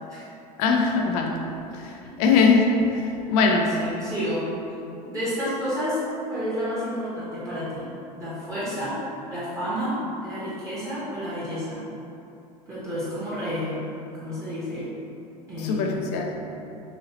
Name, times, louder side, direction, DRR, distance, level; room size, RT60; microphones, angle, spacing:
voice 1, 0.6-1.4 1.7-1.9 2.2-2.8 3.0-3.7 15.6-16.4, left 4 dB, 60° left, 2 dB, 0.5 m, -21 dB
voice 2, 3.5-4.4 5.0-6.0 6.3-7.8 8.2-9.0 9.3-11.8 12.7-13.8 14.1-14.9 15.5-16.1, equal, 15° right, -11 dB, 1.1 m, -30 dB
3.0 x 2.7 x 2.9 m, 2.7 s
hypercardioid pair, 80°, 21 cm